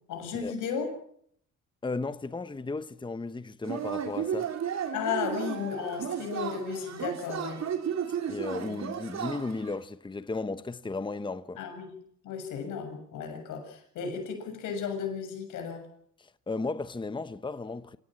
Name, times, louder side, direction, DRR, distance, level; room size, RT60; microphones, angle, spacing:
voice 1, 0.1-0.9 4.9-7.6 11.6-11.9 12.2-15.9, left 6 dB, 90° left, 7.1 m, -34 dB
voice 2, 1.8-4.5 8.3-11.6 16.2-18.0, left 3 dB, 15° left, 1.0 m, -35 dB
Yell / Cheering, 3.6-9.8, right 8 dB, 60° right, 3.7 m, -34 dB
27.0 x 17.0 x 7.6 m
cardioid pair, 90°, 30 cm